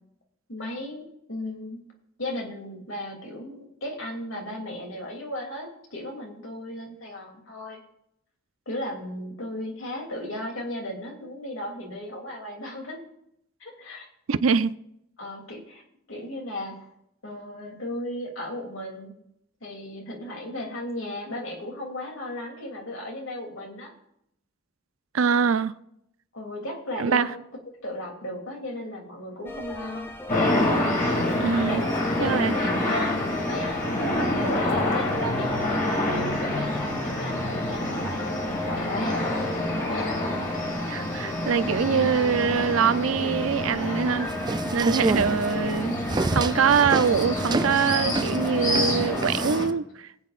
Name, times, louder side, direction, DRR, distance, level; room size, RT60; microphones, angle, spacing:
voice 1, 0.5-1.8 2.2-7.8 8.7-13.0 13.6-14.1 15.2-15.8 16.1-16.9 17.2-19.1 19.6-23.9 26.3-27.4 27.8-30.1 31.6-31.8 32.1-38.3 38.6-39.2 39.9-40.1 40.5-40.6, left 1 dB, 85° left, 2.9 m, -35 dB
voice 2, 14.3-14.7 25.1-25.7 27.0-27.3 31.4-31.8 32.2-32.5 40.8-44.3 44.7-50.1, right 6 dB, 85° right, 0.5 m, -24 dB
sound 1, 29.5-49.3, left 1 dB, 10° left, 1.0 m, -37 dB
sound 2, 30.3-49.7, left 1 dB, 40° left, 2.4 m, -27 dB
sound 3, 44.3-49.7, right 3 dB, 20° right, 0.3 m, -28 dB
20.5 x 8.5 x 2.5 m
head